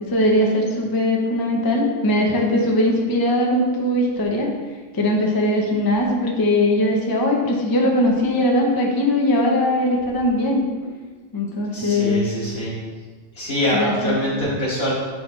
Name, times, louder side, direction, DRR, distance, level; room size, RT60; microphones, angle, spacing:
voice 1, 0.0-4.5 4.9-10.6 11.3-12.2 13.7-14.2, left 1 dB, 20° left, 0 dB, 0.7 m, -20 dB
voice 2, 11.7-12.7 13.3-14.9, left 1 dB, 70° left, -8 dB, 2.9 m, -24 dB
11.0 x 4.3 x 3.2 m, 1.4 s
omnidirectional pair, 1.5 m